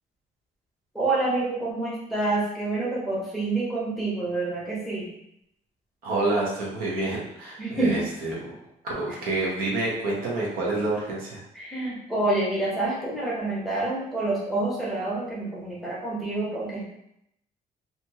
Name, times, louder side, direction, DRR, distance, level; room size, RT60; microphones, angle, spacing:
voice 1, 0.9-5.1 7.6-8.1 11.5-16.9, right 2 dB, ahead, -7 dB, 0.7 m, -27 dB
voice 2, 6.0-8.5 8.8-11.4, right 2 dB, 85° right, -4 dB, 0.9 m, -28 dB
2.6 x 2.4 x 2.8 m, 0.78 s
cardioid pair, 180°, 15 cm